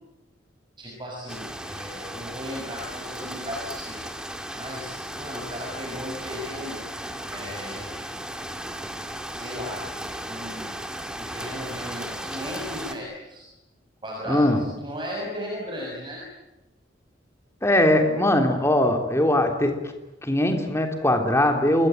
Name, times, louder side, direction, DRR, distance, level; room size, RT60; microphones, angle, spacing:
voice 1, 0.8-4.0 4.6-6.8 7.3-8.0 9.3-9.8 10.3-10.7 11.2-13.5 14.0-16.2, equal, 25° right, -1 dB, 6.5 m, -36 dB
sound 1, 1.3-12.9, right 1 dB, 5° right, 2.3 m, -35 dB
voice 2, 14.3-14.6 17.6-19.8 20.2-21.9, left 1 dB, 15° left, 4 dB, 3.3 m, -21 dB
28.0 x 21.5 x 9.1 m, 0.98 s
head